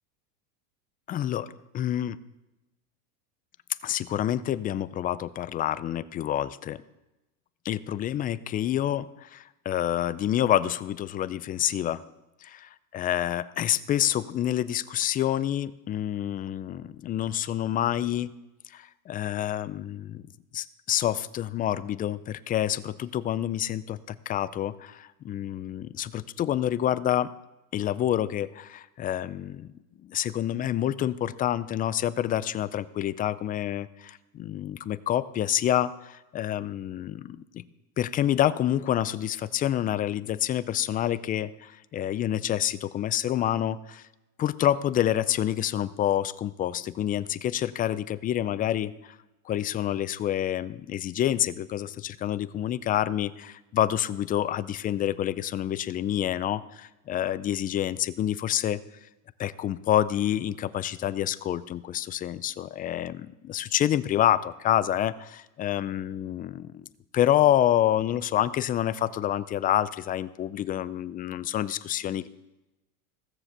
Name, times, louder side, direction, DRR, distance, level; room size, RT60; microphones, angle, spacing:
voice 1, 1.1-2.2 3.8-6.8 7.6-12.0 12.9-18.3 18.7-20.2 20.5-27.3 27.7-29.7 30.0-37.6 38.0-44.0 44.4-49.2 49.5-58.8 59.4-66.9 67.1-72.3, left 11 dB, 20° left, 16 dB, 0.3 m, -28 dB
16.5 x 7.3 x 6.6 m, 0.99 s
supercardioid pair, 115°, 43 cm